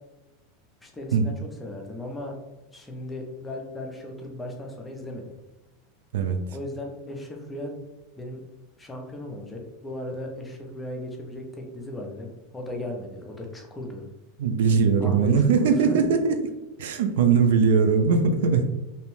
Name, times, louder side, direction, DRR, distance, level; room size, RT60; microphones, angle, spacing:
voice 1, 0.8-2.3 2.7-5.2 6.5-7.7 8.2-8.4 8.8-14.1 15.0-16.1, left 1 dB, 10° left, 1 dB, 0.4 m, -36 dB
voice 2, 14.4-16.4 16.8-18.6, right 5 dB, 80° right, 7 dB, 0.3 m, -20 dB
2.6 x 2.0 x 3.0 m, 1.0 s
supercardioid pair, 160°, 0 cm